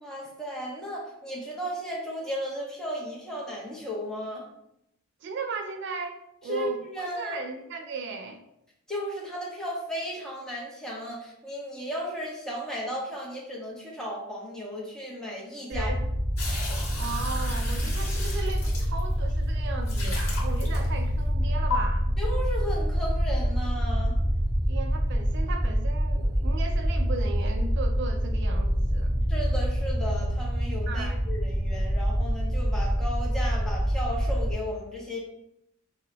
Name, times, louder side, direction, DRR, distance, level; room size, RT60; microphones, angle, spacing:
voice 1, 0.0-4.5 6.5-7.4 8.9-15.9 22.2-24.2 29.3-35.2, equal, 5° left, -4 dB, 0.7 m, -35 dB
voice 2, 5.2-6.8 7.1-8.4 15.7-16.1 17.0-22.1 24.7-29.2 30.9-31.2, right 4 dB, 55° right, 5 dB, 0.3 m, -36 dB
sound 1, 15.7-34.5, equal, 25° left, 0.9 m, -26 dB
sound 2, 16.4-19.3 19.8-21.2 21.7-21.8, left 4 dB, 70° left, 0.9 m, -36 dB
2.6 x 2.1 x 3.8 m, 0.79 s
head